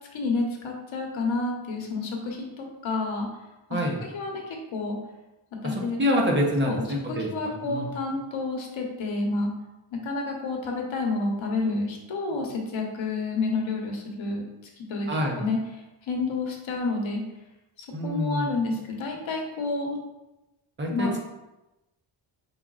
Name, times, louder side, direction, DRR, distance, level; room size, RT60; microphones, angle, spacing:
voice 1, 0.1-3.3 3.7-3.8 4.1-5.0 5.6-6.0 6.6-6.8 7.1-9.5 9.9-14.4 14.9-15.1 15.3-15.6 16.1-17.2 17.8-20.0 20.9-21.2, left 3 dB, 70° left, 0 dB, 1.1 m, -29 dB
voice 2, 3.7-4.0 5.6-7.9 15.1-15.4 17.9-18.5 20.8-21.2, equal, 25° right, 0 dB, 0.8 m, -27 dB
5.6 x 3.5 x 2.4 m, 1.0 s
wide cardioid pair, 145°, 49 cm